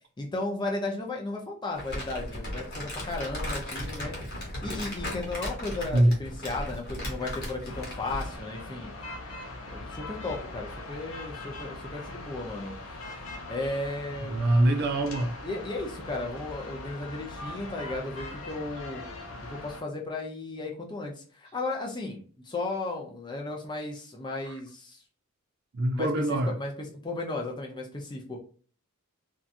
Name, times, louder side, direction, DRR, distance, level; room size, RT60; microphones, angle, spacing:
voice 1, 0.2-4.2 4.6-9.1 9.7-12.7 13.5-14.5 15.4-19.0 19.4-25.0 25.9-26.1 26.5-28.4, left 2 dB, 20° left, 0.5 m, -35 dB
Crumpling crinkling, 1.7-8.4, left 1 dB, 50° left, 1.1 m, -36 dB
sound 1, 7.6-19.8, left 2 dB, 65° left, 0.6 m, -41 dB
voice 2, 14.2-15.4 24.4-24.5 25.7-26.5, right 1 dB, 45° right, 0.4 m, -24 dB
2.7 x 2.3 x 2.5 m
head